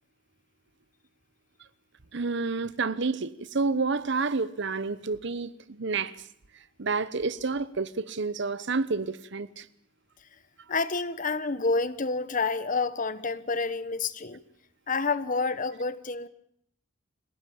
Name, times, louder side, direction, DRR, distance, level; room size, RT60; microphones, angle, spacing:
voice 1, 2.1-6.2 6.8-9.7, right 4 dB, 60° right, 0.9 m, -29 dB
voice 2, 10.7-14.4 14.9-16.3, left 4 dB, 40° left, 1.2 m, -28 dB
26.0 x 17.5 x 8.6 m
head